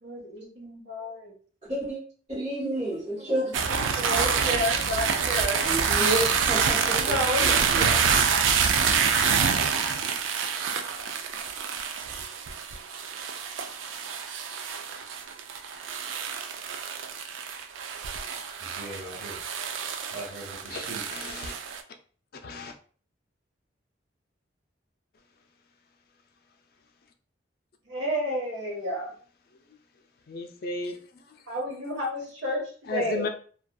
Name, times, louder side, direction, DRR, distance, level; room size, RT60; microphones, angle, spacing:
voice 1, 0.0-1.3 3.4-3.5 3.8-5.6 6.8-8.0 27.9-29.1 31.5-33.3, equal, 70° right, -3 dB, 1.2 m, -31 dB
voice 2, 1.7-2.0 2.3-3.9 5.6-7.2, right 1 dB, 35° right, -7 dB, 1.0 m, -30 dB
sound 1, 3.5-21.8, right 6 dB, 90° right, 0.3 m, -27 dB
voice 3, 18.6-19.4 20.1-21.4, right 1 dB, 55° right, -5 dB, 1.2 m, -41 dB
voice 4, 21.1-21.5 22.4-22.8 30.3-31.3 32.9-33.3, left 3 dB, 50° left, 6 dB, 0.3 m, -34 dB
2.5 x 2.2 x 2.2 m, 0.43 s
head